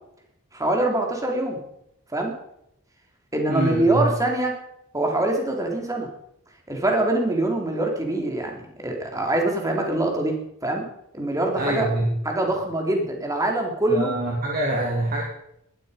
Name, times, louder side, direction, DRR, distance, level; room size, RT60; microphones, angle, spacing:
voice 1, 0.5-1.6 2.1-2.3 3.3-4.6 4.9-6.1 6.7-10.4 10.6-10.9 11.1-11.9 12.3-14.1, right 2 dB, 15° right, 1 dB, 3.5 m, -24 dB
voice 2, 3.5-4.1 11.6-12.1 13.9-15.2, right 1 dB, 45° right, -2 dB, 3.0 m, -25 dB
20.0 x 12.5 x 5.2 m, 0.77 s
head